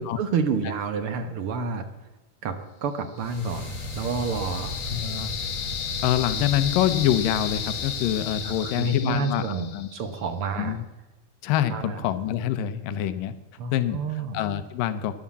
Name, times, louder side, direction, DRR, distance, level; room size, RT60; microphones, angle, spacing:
voice 1, 0.0-1.8 2.4-4.8 8.4-10.8 11.7-12.0 13.6-14.4, right 5 dB, 65° right, 7 dB, 1.4 m, -29 dB
sound 1, 3.2-10.1, left 9 dB, 70° left, 2.6 m, -34 dB
sound 2, 3.2-9.1, left 1 dB, 20° left, 4.7 m, -36 dB
voice 2, 4.9-5.3 6.0-9.9 10.6-10.9 11.4-13.3 13.7-14.0 14.3-15.2, left 11 dB, 90° left, 12 dB, 2.5 m, -25 dB
13.0 x 10.5 x 7.3 m, 1.0 s
omnidirectional pair, 3.8 m